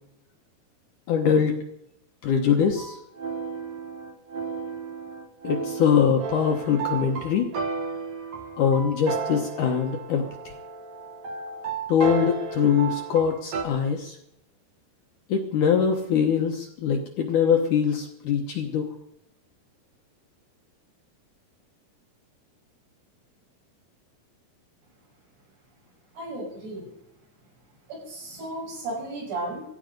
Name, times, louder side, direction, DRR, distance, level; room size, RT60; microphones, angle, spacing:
voice 1, 1.1-1.6 2.2-3.0 5.4-7.5 8.6-10.3 11.9-14.2 15.3-18.9, left 7 dB, 70° left, 3 dB, 2.0 m, -23 dB
sound 1, 2.8-13.6, right 5 dB, 55° right, 2.1 m, -33 dB
voice 2, 26.1-26.9 27.9-29.6, right 2 dB, 75° right, -2 dB, 8.2 m, -34 dB
18.0 x 15.0 x 5.2 m, 0.80 s
omnidirectional pair, 4.7 m